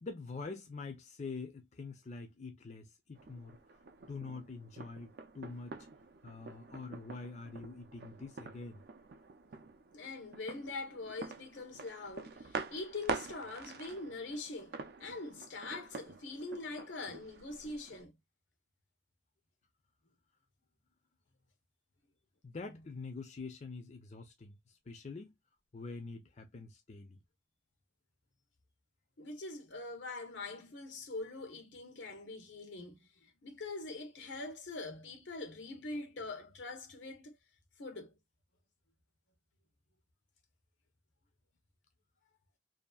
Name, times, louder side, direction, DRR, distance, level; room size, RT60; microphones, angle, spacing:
voice 1, 0.0-5.9 6.2-8.8 22.4-25.4 25.7-27.2, left 4 dB, 40° left, 0.5 m, -45 dB
sound 1, 3.2-18.0, right 4 dB, 55° right, 0.4 m, -46 dB
voice 2, 9.9-18.1 29.2-37.3 37.8-38.1, left 3 dB, 85° left, 0.8 m, -43 dB
2.7 x 2.4 x 2.2 m
head